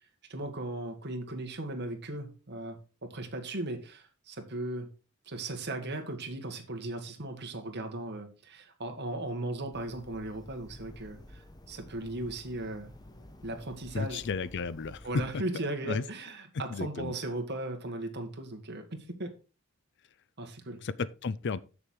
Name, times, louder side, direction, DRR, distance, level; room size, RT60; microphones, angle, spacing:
voice 1, 0.3-4.9 5.3-11.4 11.7-12.9 13.4-14.2 15.0-19.3 20.4-20.8, right 2 dB, 55° right, 1.7 m, -37 dB
sound 1, 9.7-15.4, left 1 dB, 20° left, 1.0 m, -51 dB
voice 2, 13.9-15.1 15.3-15.4 15.8-16.0 16.7-17.1 20.8-21.6, left 4 dB, 55° left, 0.5 m, -33 dB
7.1 x 6.8 x 4.7 m
head